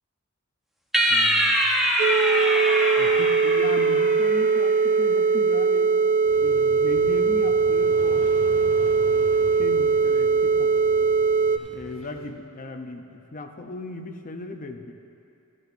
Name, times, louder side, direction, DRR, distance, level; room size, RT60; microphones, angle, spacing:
sound 1, 0.9-4.5, equal, ahead, 0.8 m, -23 dB
voice 1, 1.1-1.6 3.0-6.0 6.4-8.3 9.6-10.7 11.7-14.9, left 2 dB, 40° left, 5 dB, 0.6 m, -37 dB
sound 2, 2.0-11.6, right 5 dB, 40° right, 0.3 m, -21 dB
sound 3, 6.2-12.3, equal, 65° left, 1.0 m, -43 dB
13.0 x 11.0 x 2.6 m, 2.6 s
head